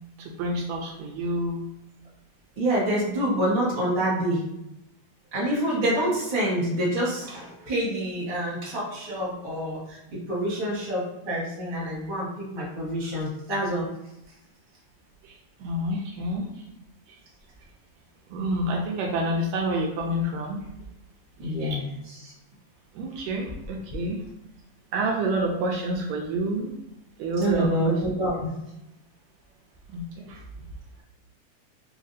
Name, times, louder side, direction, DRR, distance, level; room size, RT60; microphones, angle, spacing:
voice 1, 0.2-1.6 15.6-16.5 18.3-20.6 21.4-21.8 22.9-24.2 24.9-26.7 27.2-27.9 29.9-30.4, right 1 dB, 80° right, 0 dB, 1.6 m, -28 dB
voice 2, 2.6-4.4 5.3-13.9 21.4-21.8 22.2-22.3 27.4-28.5, right 1 dB, 35° right, -7 dB, 0.7 m, -27 dB
4.9 x 2.3 x 2.6 m, 0.86 s
omnidirectional pair, 3.5 m